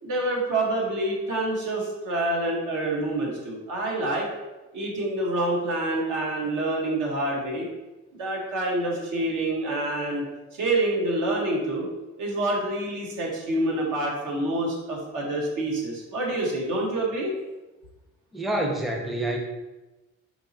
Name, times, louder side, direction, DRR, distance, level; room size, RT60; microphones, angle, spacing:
voice 1, 0.0-4.3 4.7-7.7 8.2-10.2 10.5-11.9 12.2-17.3, right 1 dB, 80° right, -2 dB, 1.1 m, -27 dB
voice 2, 18.3-19.4, right 1 dB, ahead, 2 dB, 0.5 m, -27 dB
4.5 x 3.0 x 2.6 m, 1.1 s
cardioid pair, 90°, 30 cm